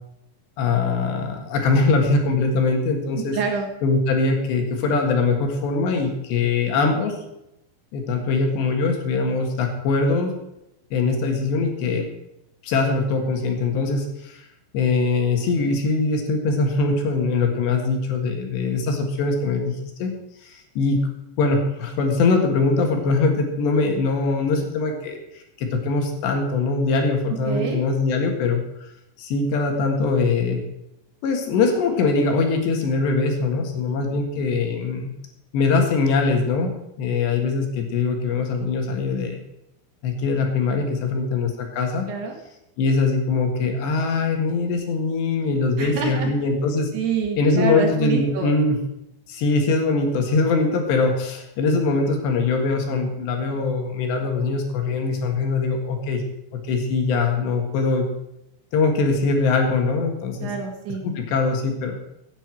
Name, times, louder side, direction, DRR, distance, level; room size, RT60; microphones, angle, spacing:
voice 1, 0.6-3.4 3.8-7.2 7.9-10.3 10.9-12.1 12.6-14.5 14.7-19.7 20.0-20.1 20.4-21.0 21.4-28.9 29.2-30.6 31.2-35.1 35.5-39.4 40.0-42.1 42.8-46.9 47.4-48.8 49.3-56.2 56.7-58.1 58.7-60.5 61.0-62.0, left 3 dB, 70° left, 3 dB, 3.8 m, -22 dB
voice 2, 3.3-3.7 27.5-27.8 42.1-42.4 45.8-46.3 46.9-48.5 60.4-61.0, right 6 dB, 65° right, 2 dB, 3.7 m, -26 dB
16.5 x 9.3 x 4.5 m, 0.87 s
omnidirectional pair, 5.3 m